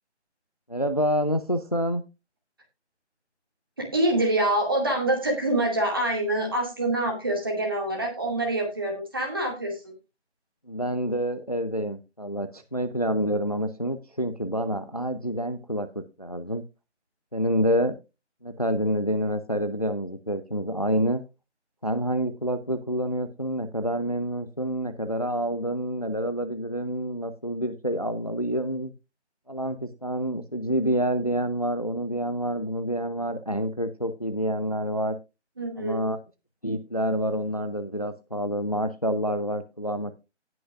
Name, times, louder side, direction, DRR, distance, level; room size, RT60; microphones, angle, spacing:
voice 1, 0.7-2.0 10.7-16.6 17.3-18.0 18.4-21.2 21.8-28.9 29.5-35.2 35.8-36.2 36.6-40.1, equal, 35° left, 11 dB, 0.7 m, -27 dB
voice 2, 3.8-9.9 35.6-36.1, right 1 dB, 20° right, 1 dB, 2.2 m, -26 dB
18.0 x 6.2 x 2.5 m, 0.26 s
figure-of-eight pair, 165°, 35 cm